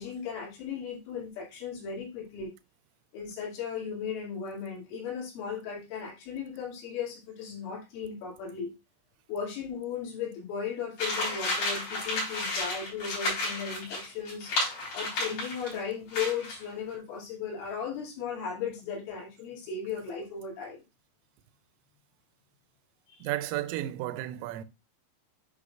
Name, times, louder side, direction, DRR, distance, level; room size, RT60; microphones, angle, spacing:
voice 1, 0.0-2.5 3.1-8.7 9.3-14.5 14.9-20.8 23.1-23.3, left 6 dB, 70° left, 4.8 m, -36 dB
sound 1, 11.0-15.8 16.1-16.6, left 2 dB, 45° left, 5.2 m, -32 dB
voice 2, 23.2-24.6, right 14 dB, 90° right, 3.2 m, -33 dB
9.9 x 5.5 x 2.4 m
omnidirectional pair, 5.7 m